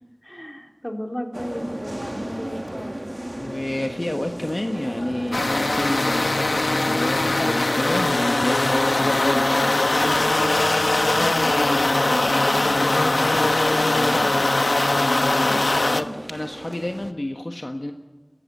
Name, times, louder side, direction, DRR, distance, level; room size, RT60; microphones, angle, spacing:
voice 1, 0.2-3.0 10.8-14.5 15.4-16.2, equal, 15° left, 2 dB, 3.5 m, -35 dB
sound 1, 1.3-17.1, right 1 dB, 30° right, 1.4 m, -36 dB
voice 2, 3.4-9.9 14.4-17.9, left 1 dB, 50° left, 4 dB, 1.4 m, -29 dB
sound 2, 5.3-16.0, left 2 dB, 75° left, 1.0 m, -21 dB
Keyboard (musical), 10.1-13.5, right 1 dB, 55° right, 4.0 m, -44 dB
22.0 x 17.0 x 9.2 m, 1.2 s
wide cardioid pair, 40°, 0 cm